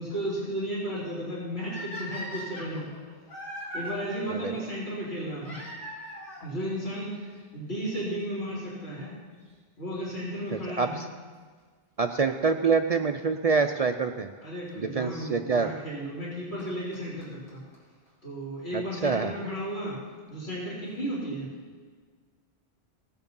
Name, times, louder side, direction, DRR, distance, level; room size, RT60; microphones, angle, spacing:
voice 1, 0.0-2.9 3.7-5.6 6.4-9.1 9.8-11.0 14.4-17.6 18.2-20.0 20.3-21.5, equal, 85° left, -7 dB, 3.3 m, -34 dB
sound 1, 1.7-3.9 5.4-6.5 7.4-7.5 8.2-8.3 8.5-8.6 10.5-10.7 13.5-13.6 14.7-14.8 16.2-16.3 16.6-16.7 16.9-17.0 17.2-17.3 17.5-17.6 17.7-17.8 18.1-18.2, equal, 55° left, 3.8 m, -39 dB
voice 2, 10.5-11.0 12.0-14.3 14.8-15.7 18.7-19.3, right 5 dB, 50° right, 7 dB, 0.5 m, -26 dB
17.5 x 7.2 x 5.4 m, 1.5 s
omnidirectional pair, 1.1 m